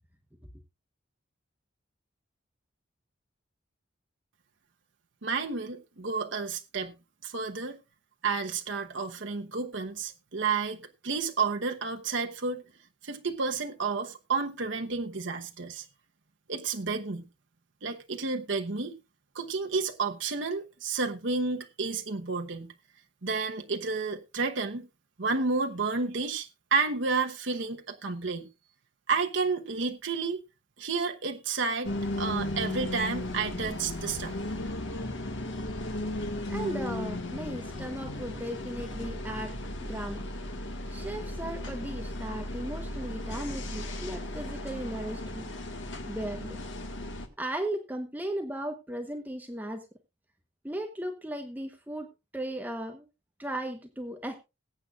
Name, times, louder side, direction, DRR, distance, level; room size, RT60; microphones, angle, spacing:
voice 1, 5.2-6.9 7.2-7.8 8.2-12.6 13.0-15.9 16.5-17.2 17.8-18.9 19.3-22.7 23.2-24.9 25.2-28.5 29.1-30.4 30.8-31.9 32.2-34.3, right 4 dB, 65° right, 1.1 m, -31 dB
sound 1, 31.8-47.3, left 1 dB, 70° left, 1.7 m, -36 dB
voice 2, 36.5-39.5 39.8-40.2 40.9-45.4 46.1-46.6 47.4-49.9 50.6-52.1 52.3-53.1 53.4-54.3, right 1 dB, 10° right, 1.1 m, -36 dB
21.0 x 8.5 x 2.4 m
head